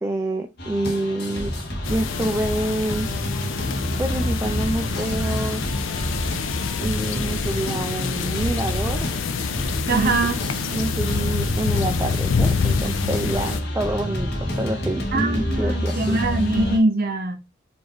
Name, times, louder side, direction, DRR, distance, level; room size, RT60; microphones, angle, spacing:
voice 1, 0.0-1.5 1.9-3.1 4.0-5.6 6.8-9.1 9.9-10.2 10.7-14.3 14.6-16.2, right 1 dB, 15° right, 0.4 m, -27 dB
sound 1, 0.6-16.8, equal, 55° left, 1.2 m, -28 dB
meadow in the middle of the forest - front, 1.8-13.6, left 5 dB, 70° left, 0.4 m, -27 dB
voice 2, 9.9-10.4 15.1-17.3, right 2 dB, 45° right, 0.7 m, -22 dB
4.9 x 2.6 x 2.9 m
head